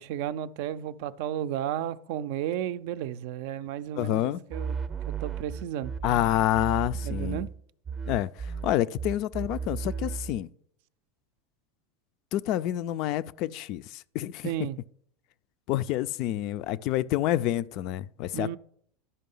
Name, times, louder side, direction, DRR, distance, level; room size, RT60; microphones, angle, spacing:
voice 1, 0.0-4.8 5.1-5.9 7.0-7.5 14.4-14.8 18.3-18.6, right 11 dB, 65° right, 0.4 m, -33 dB
voice 2, 3.9-4.4 6.0-7.5 8.1-10.5 12.3-14.5 15.7-18.6, left 13 dB, 50° left, 0.3 m, -28 dB
sound 1, 4.5-7.6 7.8-10.4, right 6 dB, 25° right, 0.6 m, -34 dB
11.0 x 5.5 x 5.4 m
supercardioid pair, 140°, 0 cm